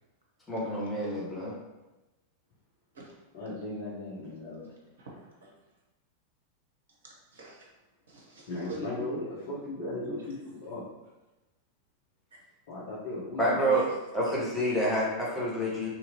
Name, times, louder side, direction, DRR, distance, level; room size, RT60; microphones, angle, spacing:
voice 1, 0.5-1.5 13.4-13.8 14.1-15.9, right 1 dB, 10° left, -6 dB, 0.9 m, -28 dB
voice 2, 3.3-4.7 8.5-10.8 12.7-13.6, left 2 dB, 50° left, -9 dB, 0.9 m, -37 dB
voice 3, 5.0-5.5 7.0-7.6 8.1-9.3 9.8-10.2 10.4-10.5 13.6-13.9 14.3-14.4, right 2 dB, 65° right, -3 dB, 0.7 m, -44 dB
2.9 x 2.6 x 2.8 m, 1.1 s
figure-of-eight pair, 90°, 0 cm